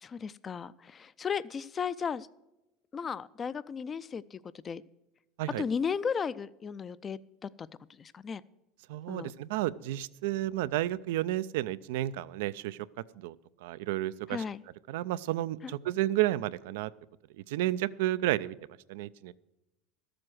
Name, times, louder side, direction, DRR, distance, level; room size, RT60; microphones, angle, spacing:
voice 1, 0.0-2.3 2.9-4.4 4.6-4.8 5.5-7.7 8.0-8.4 9.1-9.3 14.3-14.6 15.6-15.7, left 6 dB, 30° left, 17 dB, 0.4 m, -35 dB
voice 2, 8.9-12.8 13.2-13.4 13.6-14.4 14.9-16.9 17.4-18.5 18.9-19.3, right 15 dB, 80° right, 17 dB, 0.4 m, -31 dB
13.5 x 7.7 x 6.2 m, 0.95 s
supercardioid pair, 105°, 0 cm